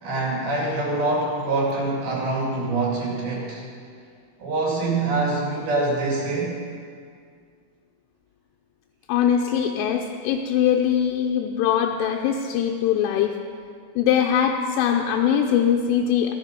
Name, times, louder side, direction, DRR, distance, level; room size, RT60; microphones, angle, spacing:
voice 1, 0.0-3.6 4.4-6.6, right 2 dB, 55° right, -3 dB, 3.9 m, -25 dB
voice 2, 9.1-13.4 14.0-16.3, left 9 dB, 80° left, 2 dB, 3.1 m, -22 dB
16.5 x 12.5 x 5.2 m, 2.2 s
omnidirectional pair, 6.0 m